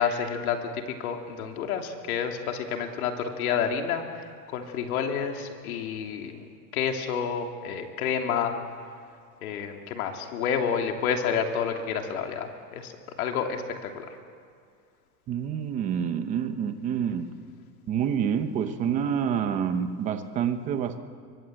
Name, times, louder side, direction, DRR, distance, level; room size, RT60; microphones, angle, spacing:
voice 1, 0.0-6.4 6.7-8.5 9.4-12.9 13.2-14.1, left 7 dB, 70° left, 4 dB, 3.1 m, -29 dB
voice 2, 15.3-17.3 17.9-21.0, right 8 dB, 15° right, 9 dB, 0.8 m, -27 dB
29.5 x 24.0 x 7.7 m, 2.2 s
supercardioid pair, 180°, 45 cm